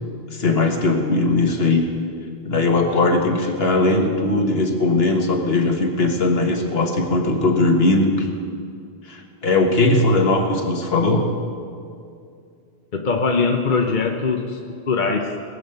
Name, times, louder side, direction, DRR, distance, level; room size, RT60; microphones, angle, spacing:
voice 1, 0.3-1.8 2.4-8.3 9.0-11.3, left 2 dB, 65° left, 3 dB, 1.7 m, -19 dB
voice 2, 12.9-14.6 14.9-15.3, left 4 dB, 50° left, 2 dB, 1.0 m, -21 dB
20.5 x 8.6 x 6.8 m, 2.4 s
omnidirectional pair, 1.1 m